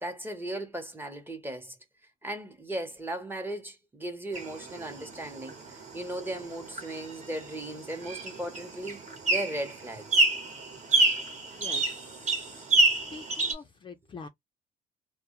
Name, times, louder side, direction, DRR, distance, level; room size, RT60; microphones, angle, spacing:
voice 1, 0.0-1.8 2.2-10.1, right 1 dB, 10° right, 0.8 m, -37 dB
sound 1, 4.3-13.5, right 2 dB, 45° right, 1.0 m, -29 dB
voice 2, 11.4-11.8 12.2-14.3, left 5 dB, 30° left, 0.4 m, -46 dB
2.2 x 2.0 x 2.9 m
cardioid pair, 110°, 17 cm